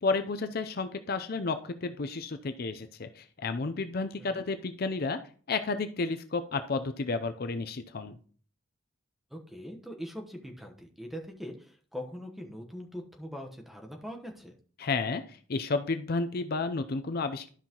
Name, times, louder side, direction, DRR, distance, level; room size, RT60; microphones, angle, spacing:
voice 1, 0.0-5.2 5.5-8.2 14.8-17.5, left 3 dB, 50° left, 9 dB, 0.5 m, -32 dB
voice 2, 9.3-14.6, equal, ahead, 2 dB, 1.0 m, -42 dB
12.0 x 5.6 x 2.9 m, 0.43 s
head